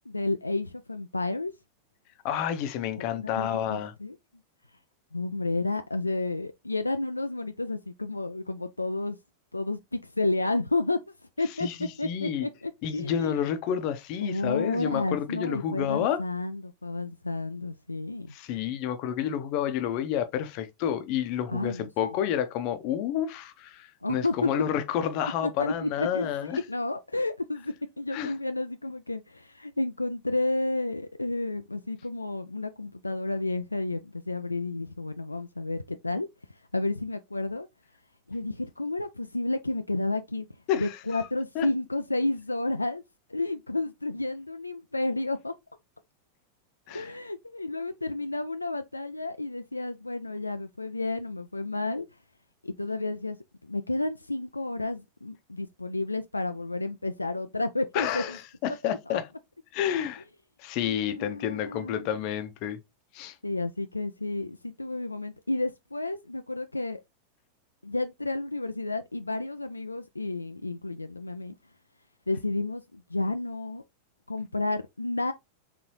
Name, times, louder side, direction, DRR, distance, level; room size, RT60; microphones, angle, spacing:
voice 1, 0.1-1.5 3.0-4.2 5.1-9.2 9.5-11.0 11.4-13.4 14.2-18.3 21.5-21.9 24.0-24.5 25.4-37.7 38.3-40.5 40.8-43.0 43.3-45.5 46.9-52.1 52.6-53.4 53.6-58.4 58.8-59.2 60.9-62.1 63.4-67.0 67.8-71.5 72.3-73.8 74.3-75.3, left 2 dB, 85° left, 0.3 m, -31 dB
voice 2, 2.2-3.9 11.6-12.5 12.8-16.2 18.3-26.6 28.1-28.3 40.7-41.3 41.6-41.7 46.9-47.1 57.9-59.3 59.7-60.2 60.6-62.8 63.1-63.4, left 9 dB, 45° left, 0.7 m, -30 dB
4.0 x 3.7 x 3.0 m
figure-of-eight pair, 90°, 0 cm